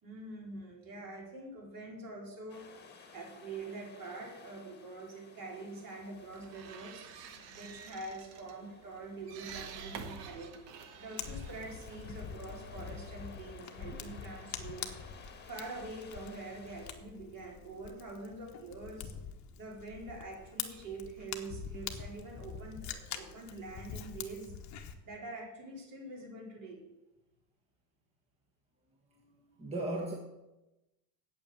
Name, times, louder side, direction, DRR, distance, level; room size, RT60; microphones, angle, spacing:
voice 1, 0.0-2.7 2.9-7.1 7.5-10.5 11.0-14.9 15.5-19.1 19.6-24.6 25.0-26.8, right 2 dB, 40° right, -1 dB, 4.2 m, -45 dB
sound 1, 2.5-16.9, left 5 dB, 20° left, 1.6 m, -56 dB
sound 2, 6.1-12.6, right 6 dB, 75° right, 1.6 m, -49 dB
Fire, 11.2-24.9, left 8 dB, 35° left, 1.2 m, -45 dB
voice 2, 29.6-30.1, right 2 dB, 10° right, 0 dB, 1.4 m, -36 dB
8.6 x 8.5 x 7.6 m, 1.0 s
supercardioid pair, 135°, 49 cm